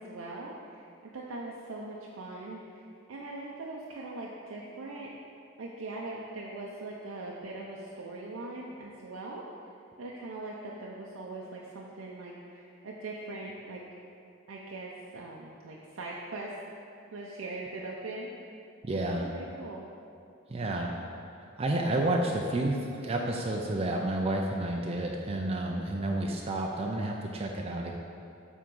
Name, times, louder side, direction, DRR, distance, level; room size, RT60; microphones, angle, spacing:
voice 1, 0.0-5.1 5.6-9.4 10.0-13.8 14.5-16.6 17.1-18.6 18.9-19.8, right 2 dB, 90° right, -3 dB, 0.6 m, -41 dB
voice 2, 18.8-19.3 20.5-20.9 21.4-27.9, right 1 dB, 30° right, 0 dB, 0.4 m, -30 dB
7.6 x 3.6 x 5.3 m, 2.6 s
head